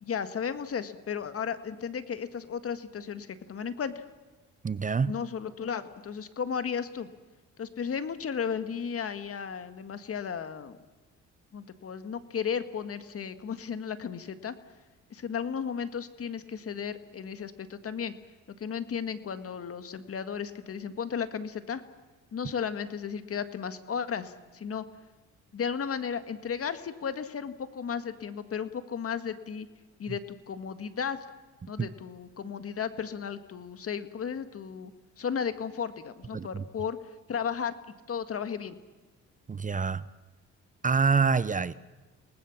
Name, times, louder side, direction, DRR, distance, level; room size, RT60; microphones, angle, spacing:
voice 1, 0.0-4.1 5.1-7.1 7.6-10.8 11.5-14.6 15.1-18.1 18.6-21.8 22.3-24.8 25.5-29.7 30.0-31.2 31.7-34.9 35.2-37.0 37.3-37.7 38.1-38.8, left 7 dB, 50° left, 1.9 m, -34 dB
voice 2, 4.6-5.2 31.6-31.7 36.3-36.6 39.5-40.0 40.8-41.7, right 5 dB, 25° right, 0.7 m, -26 dB
28.5 x 19.5 x 7.3 m
cardioid pair, 90°, 30 cm